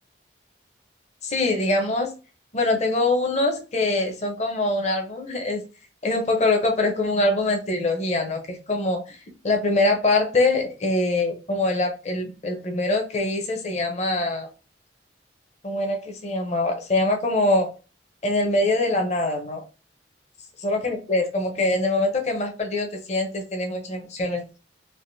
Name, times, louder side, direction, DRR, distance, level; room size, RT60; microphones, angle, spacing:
voice 1, 1.2-2.1 2.5-5.6 6.0-9.2 9.4-14.5 15.6-17.7 18.2-19.6 20.6-24.4, left 2 dB, 35° left, 2 dB, 0.7 m, -23 dB
3.4 x 2.5 x 2.6 m, 0.32 s
head